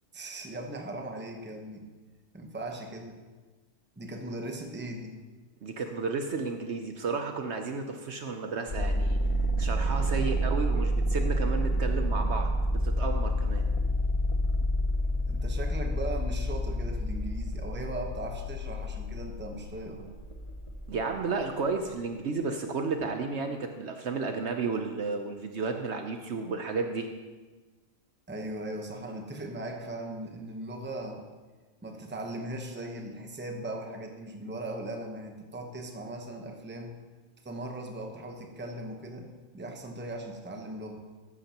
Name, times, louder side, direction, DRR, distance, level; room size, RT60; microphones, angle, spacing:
voice 1, 0.1-1.9 2.3-3.2 4.0-5.1 10.2-10.3 15.3-20.1 28.3-31.2 31.8-36.9 37.4-39.3 39.5-41.0, right 1 dB, 10° right, 3 dB, 0.8 m, -38 dB
voice 2, 5.6-9.2 9.6-13.7 20.9-27.1, right 4 dB, 60° right, 5 dB, 0.9 m, -32 dB
sound 1, 8.7-21.3, equal, 30° left, 0.6 m, -29 dB
13.5 x 11.0 x 2.9 m, 1.3 s
omnidirectional pair, 1.4 m